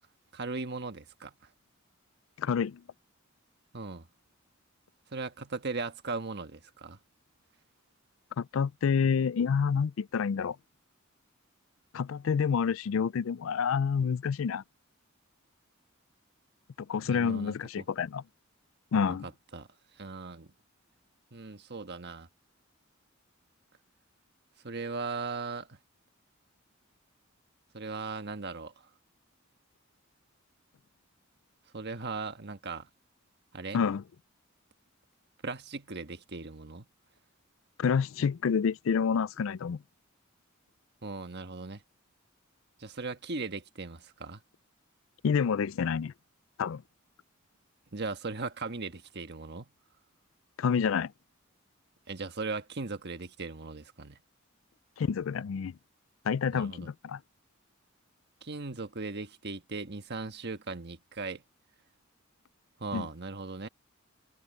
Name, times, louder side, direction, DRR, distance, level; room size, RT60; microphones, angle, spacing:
voice 1, 0.3-1.3 3.7-4.1 5.1-7.0 17.0-17.8 19.1-19.7 20.0-20.5 21.3-22.3 24.6-25.8 27.7-28.7 31.7-32.9 33.5-33.8 35.4-36.9 41.0-41.8 42.8-44.4 47.9-49.7 52.1-54.2 56.5-56.9 58.4-61.4 62.8-63.7, right 3 dB, 55° right, 1.4 m, -38 dB
voice 2, 2.4-2.8 8.4-10.6 11.9-14.6 16.9-18.2 18.9-19.3 33.7-34.0 37.8-39.8 45.2-46.1 46.6-46.8 50.6-51.1 55.0-55.7 56.3-57.2 62.9-63.1, left 6 dB, 70° left, 0.4 m, -28 dB
head